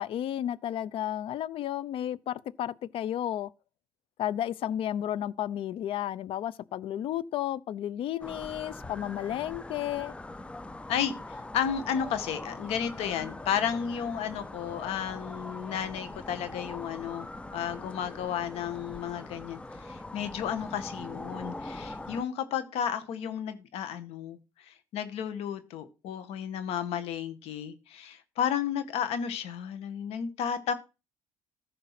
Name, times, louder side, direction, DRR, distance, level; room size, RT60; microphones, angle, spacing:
voice 1, 0.0-3.5 4.2-10.1, left 11 dB, 60° left, 0.7 m, -32 dB
sound 1, 8.2-22.2, left 2 dB, 10° left, 0.7 m, -42 dB
voice 2, 11.5-24.4 24.7-30.7, left 8 dB, 75° left, 1.8 m, -33 dB
14.5 x 5.1 x 6.0 m
cardioid pair, 120°, 10 cm